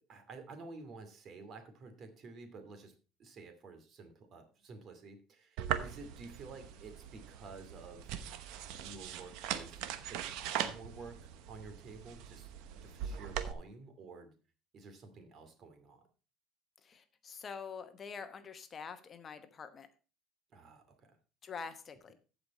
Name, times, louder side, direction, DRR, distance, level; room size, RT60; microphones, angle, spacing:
voice 1, 0.1-2.9 3.2-8.2 8.7-9.8 10.1-12.5 12.8-14.3 14.7-16.0 20.5-21.2, right 3 dB, 45° right, 7 dB, 2.3 m, -51 dB
sound 1, 5.6-13.5, right 10 dB, 75° right, 1.0 m, -40 dB
voice 2, 16.8-19.9 21.4-22.1, left 6 dB, 35° left, 9 dB, 1.0 m, -46 dB
14.5 x 5.2 x 4.2 m, 0.35 s
supercardioid pair, 110°, 0 cm